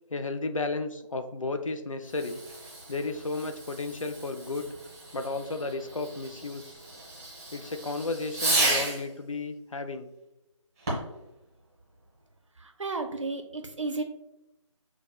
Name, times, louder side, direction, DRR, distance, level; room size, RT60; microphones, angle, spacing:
voice 1, 0.1-2.4 2.9-4.7 5.1-6.8 7.5-10.1, left 3 dB, 80° left, 8 dB, 0.5 m, -33 dB
Fireworks, 2.0-9.1 10.8-11.2, right 2 dB, 10° right, 0.8 m, -33 dB
voice 2, 12.6-14.0, right 3 dB, 70° right, 5 dB, 0.6 m, -33 dB
5.9 x 2.2 x 2.3 m, 0.90 s
figure-of-eight pair, 160°, 17 cm